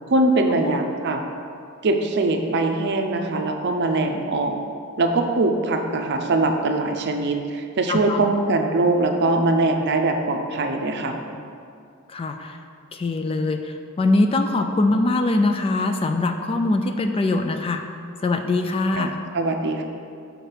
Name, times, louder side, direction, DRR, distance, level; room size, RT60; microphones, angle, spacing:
voice 1, 0.1-1.2 1.8-4.6 5.0-11.1 19.0-19.8, right 2 dB, 55° right, 4 dB, 0.5 m, -22 dB
voice 2, 7.9-8.3 11.3-11.4 12.1-12.6 12.9-17.8 18.2-19.2, left 2 dB, 25° left, 6 dB, 0.3 m, -22 dB
6.4 x 4.5 x 5.0 m, 2.5 s
head